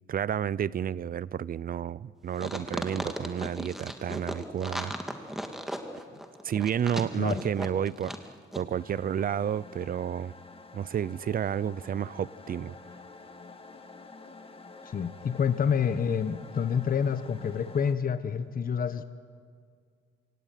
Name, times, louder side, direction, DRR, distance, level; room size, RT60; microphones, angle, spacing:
voice 1, 0.1-4.9 6.4-8.2 8.5-10.3 10.7-12.8, right 9 dB, 45° right, 0.6 m, -31 dB
sound 1, 2.4-8.3 8.5-8.6, equal, ahead, 2.3 m, -36 dB
sound 2, 8.7-17.9, left 3 dB, 30° left, 2.1 m, -49 dB
voice 2, 14.8-19.0, left 7 dB, 45° left, 1.1 m, -28 dB
28.0 x 18.0 x 9.2 m
cardioid pair, 90°, 20 cm